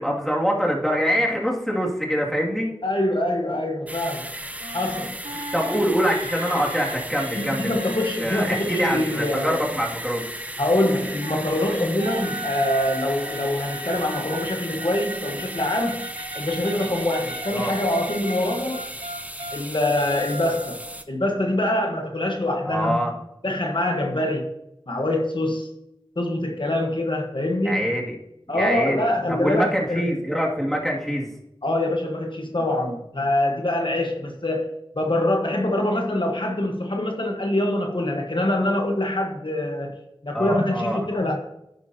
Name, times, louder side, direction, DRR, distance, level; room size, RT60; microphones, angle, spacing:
voice 1, 0.0-2.7 5.5-7.8 8.2-10.2 17.5-17.7 22.6-23.1 27.6-28.2 28.5-31.3 40.3-41.1, equal, 5° left, -2 dB, 2.3 m, -24 dB
voice 2, 2.8-4.3 4.7-5.1 7.4-9.6 10.6-16.1 16.3-18.8 19.5-20.8 21.1-23.0 23.4-24.5 24.9-25.7 26.2-27.9 28.5-30.1 31.6-34.7 34.9-40.0 40.2-41.4, left 1 dB, 60° left, 2 dB, 1.2 m, -24 dB
sound 1, 3.9-21.0, right 1 dB, 15° right, 0.7 m, -35 dB
sound 2, 4.6-9.7 10.6-19.6 19.9-21.0, right 1 dB, 75° right, 0.9 m, -37 dB
10.0 x 9.2 x 2.8 m, 0.83 s
wide cardioid pair, 45°, 9 cm